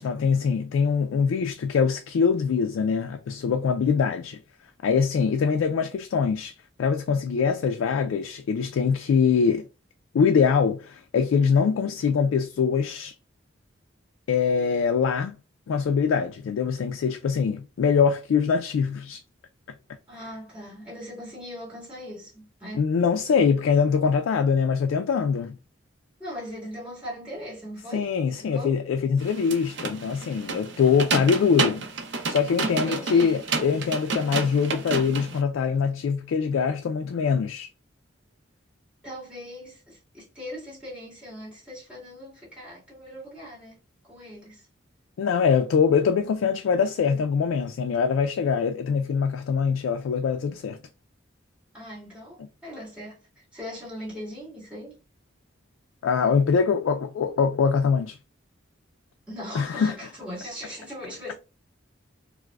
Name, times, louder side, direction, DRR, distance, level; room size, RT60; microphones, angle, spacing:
voice 1, 0.0-4.4 4.8-6.5 6.8-9.7 10.1-13.1 14.3-15.4 15.7-19.2 22.8-25.6 27.9-31.8 32.3-37.7 45.2-50.8 56.0-58.2 59.5-59.9, left 6 dB, 85° left, 0.3 m, -23 dB
voice 2, 20.1-22.9 26.2-28.1 28.3-28.8 32.7-33.5 39.0-43.8 44.0-44.7 51.7-55.0 59.3-61.3, equal, 5° right, 1.9 m, -40 dB
sound 1, 29.2-35.4, right 4 dB, 60° right, 0.6 m, -30 dB
4.6 x 2.0 x 2.2 m
head